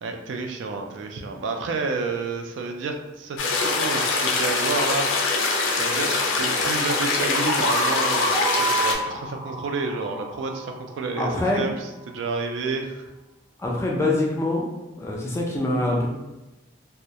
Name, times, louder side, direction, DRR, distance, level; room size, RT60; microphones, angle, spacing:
voice 1, 0.0-5.1 5.3-13.0, right 3 dB, 75° right, 3 dB, 0.3 m, -30 dB
sound 1, 3.4-8.9, left 3 dB, 85° left, 0.4 m, -23 dB
sound 2, 7.4-11.2, right 1 dB, 30° right, 0.6 m, -28 dB
voice 2, 11.2-11.6 13.6-14.6 15.0-16.1, left 2 dB, 15° left, -2 dB, 0.3 m, -24 dB
2.2 x 2.0 x 2.7 m, 1.0 s
head